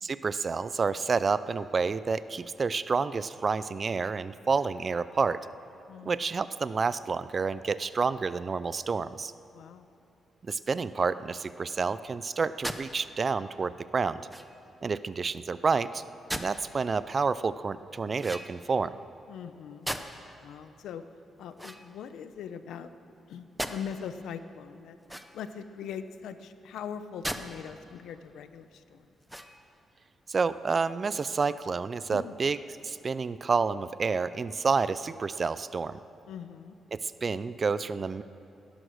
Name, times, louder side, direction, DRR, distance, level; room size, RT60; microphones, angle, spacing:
voice 1, 0.0-5.4 6.0-9.3 10.4-14.2 14.8-16.0 16.3-18.9 30.3-32.6 32.8-36.0 36.9-38.2, right 4 dB, 35° right, 15 dB, 0.4 m, -29 dB
voice 2, 5.9-6.2 9.5-9.9 19.3-19.9 20.4-21.0 21.4-22.9 23.3-25.0 25.3-29.1 32.1-32.3 36.3-36.7, left 7 dB, 90° left, 11 dB, 0.7 m, -41 dB
sound 1, 12.6-12.9 14.3-14.7 16.3-16.6 18.2-18.8 19.8-20.3 21.5-22.4 23.6-23.8 25.0-25.6 27.2-27.5 28.0-28.1 29.2-29.8, equal, ahead, 0.7 m, -37 dB
17.5 x 11.5 x 6.4 m, 2.8 s
cardioid pair, 125°, 0 cm